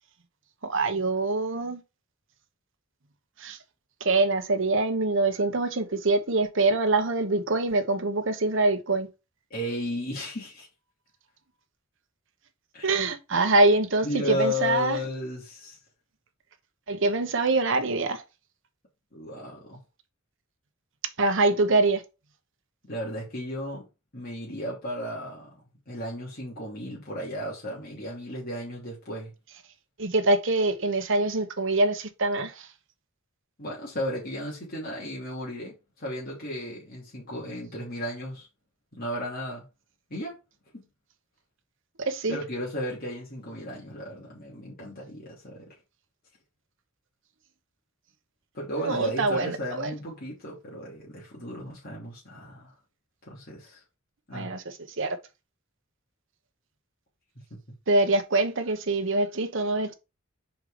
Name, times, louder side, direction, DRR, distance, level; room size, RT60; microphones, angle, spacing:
voice 1, 0.6-1.8 3.4-3.6 4.0-9.1 12.8-15.0 16.9-18.2 21.2-22.0 30.0-32.7 42.0-42.4 48.8-49.6 54.3-55.2 57.9-59.9, right 2 dB, 65° right, 1.1 m, -24 dB
voice 2, 9.5-10.7 12.7-13.0 14.0-15.8 19.1-19.8 22.9-23.8 24.1-25.5 25.9-29.3 33.6-38.5 38.9-39.6 40.1-40.4 40.7-40.9 42.3-45.7 48.5-52.7 53.3-53.8 54.3-54.5, left 1 dB, 45° left, 2.9 m, -34 dB
5.1 x 4.6 x 5.0 m
head